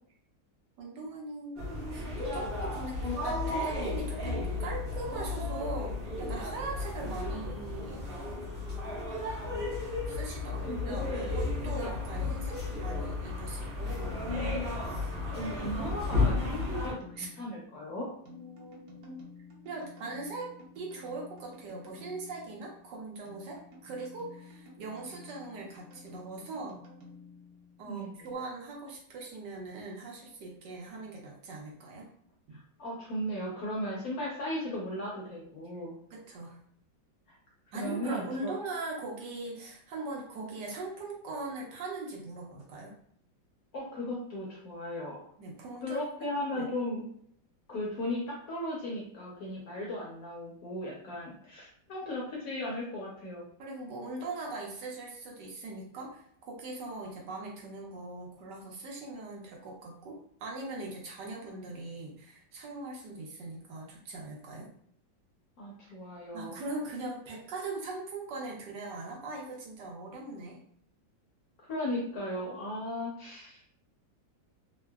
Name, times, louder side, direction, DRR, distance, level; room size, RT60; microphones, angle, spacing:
voice 1, 0.8-1.6 1.9-8.1 10.1-14.2 17.2-17.3 18.3-19.2 19.6-20.5 20.7-26.8 27.8-32.1 32.5-32.6 36.1-36.6 37.7-42.9 45.4-46.6 51.1-51.2 53.6-64.7 66.3-70.6, right 2 dB, 70° right, -1 dB, 1.4 m, -41 dB
sound 1, 1.6-16.9, left 3 dB, 40° right, 0.9 m, -33 dB
voice 2, 10.4-11.3 15.4-18.1 27.9-28.1 32.8-35.9 37.7-38.5 43.7-45.3 45.8-47.1 47.7-53.4 65.6-66.6 71.7-73.6, left 1 dB, 60° left, -4 dB, 1.1 m, -36 dB
sound 2, 13.9-28.3, left 3 dB, 90° right, 1.5 m, -52 dB
3.6 x 2.2 x 2.3 m, 0.64 s
omnidirectional pair, 2.0 m